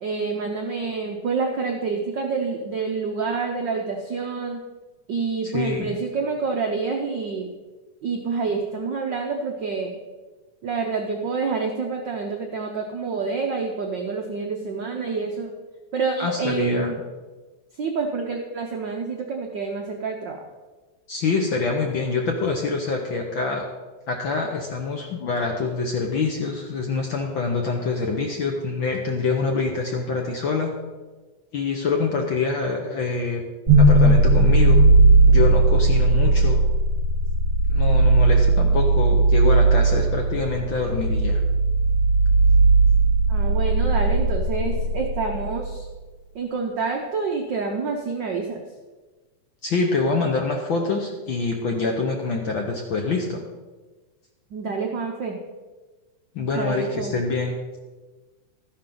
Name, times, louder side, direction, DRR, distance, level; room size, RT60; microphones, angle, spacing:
voice 1, 0.0-4.6 5.1-7.5 8.0-10.0 10.6-15.5 15.9-17.0 17.8-20.4 43.3-45.8 46.3-48.6 54.5-55.4 56.5-57.1, right 4 dB, 85° right, 2 dB, 0.9 m, -27 dB
voice 2, 5.4-6.0 16.2-16.9 21.1-23.7 24.1-30.7 31.5-33.4 33.8-34.8 35.3-36.6 37.7-41.4 49.6-53.4 56.3-57.6, left 4 dB, 65° left, 1 dB, 1.2 m, -25 dB
sound 1, 33.7-45.7, right 2 dB, 15° right, 4.2 m, -17 dB
13.0 x 11.0 x 3.9 m, 1.3 s
omnidirectional pair, 3.4 m